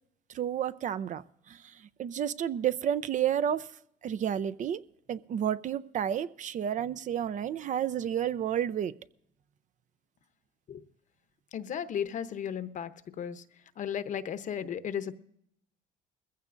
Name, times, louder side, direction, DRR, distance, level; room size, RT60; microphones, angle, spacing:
voice 1, 0.3-4.8 5.1-8.9, right 9 dB, 50° right, 15 dB, 0.5 m, -31 dB
voice 2, 11.5-12.9 13.2-13.4 13.8-15.1, left 8 dB, 50° left, 12 dB, 0.8 m, -34 dB
21.0 x 15.5 x 2.6 m, 0.72 s
cardioid pair, 110°, 17 cm